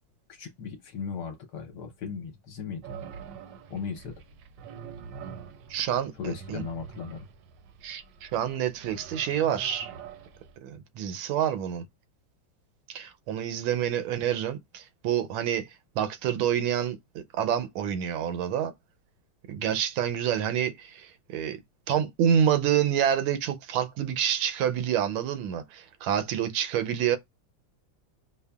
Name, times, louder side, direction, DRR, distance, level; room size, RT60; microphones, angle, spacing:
voice 1, 0.3-2.8 3.7-4.1 6.2-7.3, left 6 dB, 65° left, 1.2 m, -37 dB
sound 1, 2.8-10.6, right 7 dB, 75° right, 1.1 m, -45 dB
voice 2, 5.7-6.6 7.8-9.9 10.6-11.8 12.9-15.7 16.0-18.7 19.5-21.6 21.9-27.2, right 9 dB, 90° right, 1.5 m, -28 dB
5.3 x 2.2 x 2.3 m
omnidirectional pair, 2.3 m